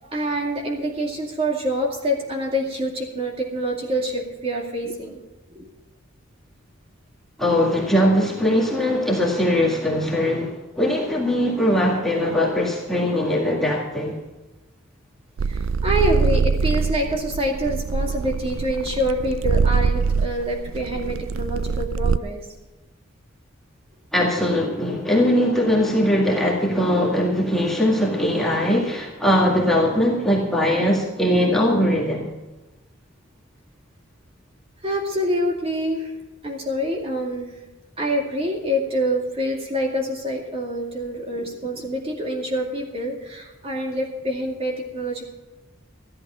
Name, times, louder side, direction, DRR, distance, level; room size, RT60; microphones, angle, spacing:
voice 1, 0.1-5.2 5.6-5.7 15.8-22.4 34.8-36.0 36.4-37.5 38.0-45.3, equal, 30° right, 0 dB, 2.3 m, -26 dB
voice 2, 7.4-14.2 24.1-32.3, equal, ahead, -3 dB, 1.9 m, -20 dB
sound 1, 15.4-22.2, right 5 dB, 85° right, 0.4 m, -23 dB
13.5 x 11.5 x 5.7 m, 1.1 s
head